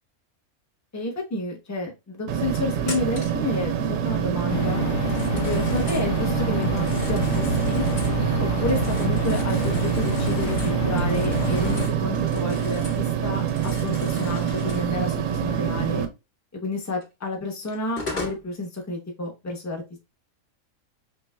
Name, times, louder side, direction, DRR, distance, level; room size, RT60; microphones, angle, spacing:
voice 1, 0.9-4.8 5.3-7.9 8.4-16.1 16.5-19.8, left 2 dB, 15° left, 1 dB, 0.7 m, -30 dB
sound 1, 2.3-16.1, right 9 dB, 70° right, 0.9 m, -26 dB
Telephone, 2.8-3.4 5.0-6.1 6.6-8.2 8.6-13.1 13.3-14.9 17.0-17.1 17.7-18.4, left 3 dB, 40° left, 2.0 m, -39 dB
sound 2, 4.5-11.9, left 2 dB, 80° left, 1.3 m, -28 dB
5.3 x 2.5 x 2.2 m, 0.26 s
omnidirectional pair, 1.5 m